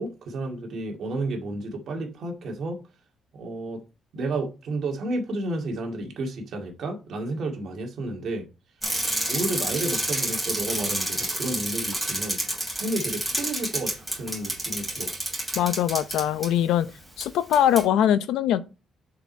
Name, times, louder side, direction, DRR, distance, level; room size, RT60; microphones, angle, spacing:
voice 1, 0.0-2.8 3.3-3.8 4.1-8.5 9.3-12.4 12.7-15.1, right 2 dB, 50° right, 2.0 m, -31 dB
Bicycle, 8.8-16.5 17.2-17.3 17.5-17.8, right 1 dB, ahead, 3.0 m, -29 dB
voice 2, 15.6-16.9 17.2-18.6, left 10 dB, 85° left, 0.7 m, -22 dB
7.0 x 5.0 x 4.4 m
cardioid pair, 165°, 0 cm